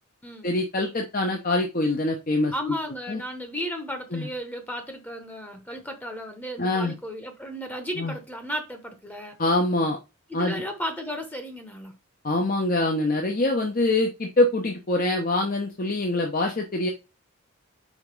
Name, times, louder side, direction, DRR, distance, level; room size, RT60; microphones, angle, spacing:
voice 1, 0.4-2.5 3.1-3.2 4.1-4.3 6.6-6.9 8.0-8.1 9.4-10.0 10.3-10.5 12.2-16.9, left 2 dB, 40° left, 0.8 m, -24 dB
voice 2, 2.5-9.4 10.3-11.9 12.3-12.4, equal, 10° left, 1.0 m, -34 dB
5.2 x 3.6 x 5.2 m
head